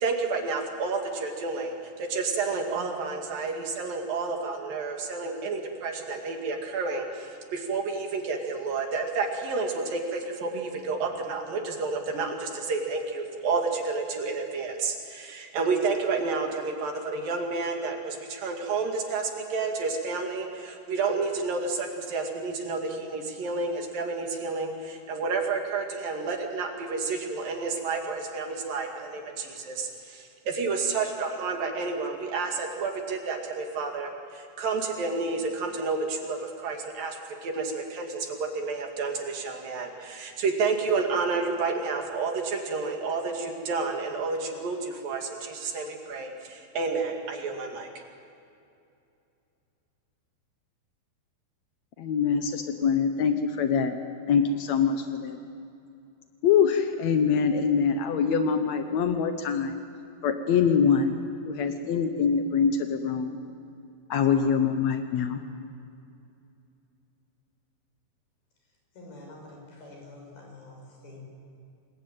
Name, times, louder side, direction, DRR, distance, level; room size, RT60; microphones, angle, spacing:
voice 1, 0.0-47.9, right 4 dB, 60° right, 2 dB, 3.9 m, -30 dB
voice 2, 52.0-54.0 54.3-55.4 56.4-59.8 60.2-61.1 61.4-63.4 64.1-65.4, left 6 dB, 80° left, 7 dB, 1.5 m, -24 dB
voice 3, 68.9-71.2, left 2 dB, 65° left, 0 dB, 8.2 m, -47 dB
28.0 x 21.0 x 9.0 m, 2.6 s
omnidirectional pair, 4.8 m